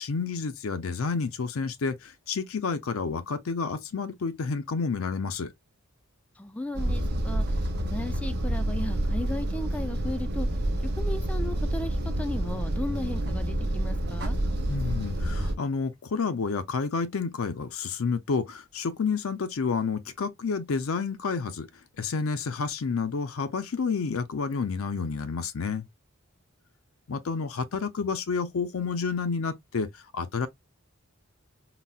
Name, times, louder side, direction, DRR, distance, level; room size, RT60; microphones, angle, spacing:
voice 1, 0.0-5.5 14.7-21.7 22.0-25.9 27.1-30.5, left 5 dB, 85° left, 0.5 m, -30 dB
voice 2, 6.4-10.5 10.9-14.4, left 1 dB, 5° left, 0.3 m, -36 dB
sound 1, 6.7-15.5, right 1 dB, 50° right, 0.7 m, -28 dB
4.0 x 2.0 x 2.3 m
head